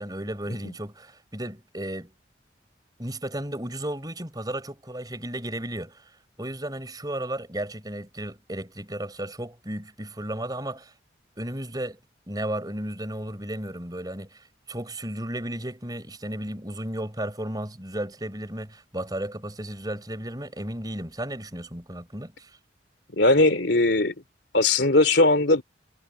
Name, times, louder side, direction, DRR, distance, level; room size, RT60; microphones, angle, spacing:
voice 1, 0.0-2.1 3.0-6.1 6.4-10.9 11.4-12.0 12.3-22.5, right 1 dB, 20° right, 4.8 m, -34 dB
voice 2, 23.1-24.1 24.5-25.6, left 2 dB, 65° left, 3.2 m, -20 dB
head